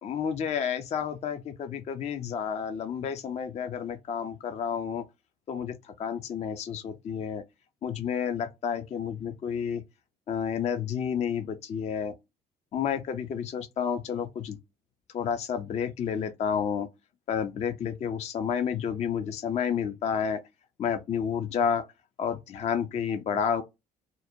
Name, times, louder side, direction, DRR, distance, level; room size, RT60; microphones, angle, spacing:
voice 1, 0.0-5.0 5.5-7.4 7.8-9.8 10.3-12.1 12.7-14.6 15.1-16.9 17.3-20.4 20.8-21.8 22.2-23.6, left 7 dB, 30° left, 0.3 m, -30 dB
2.5 x 2.0 x 2.6 m
hypercardioid pair, 55°, 21 cm